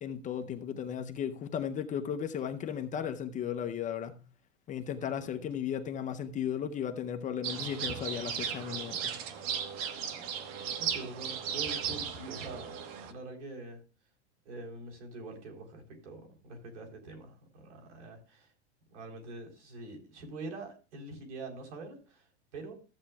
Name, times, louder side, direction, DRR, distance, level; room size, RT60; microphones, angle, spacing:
voice 1, 0.0-4.2 4.7-9.2, left 8 dB, 20° left, 0.7 m, -35 dB
voice 2, 5.0-5.5 10.8-12.8 13.0-13.8 14.5-18.5 18.9-22.3 22.5-22.7, right 2 dB, 90° right, 3.7 m, -45 dB
sound 1, 7.4-13.1, right 7 dB, 55° right, 1.4 m, -36 dB
14.5 x 8.5 x 2.3 m
supercardioid pair, 140°, 34 cm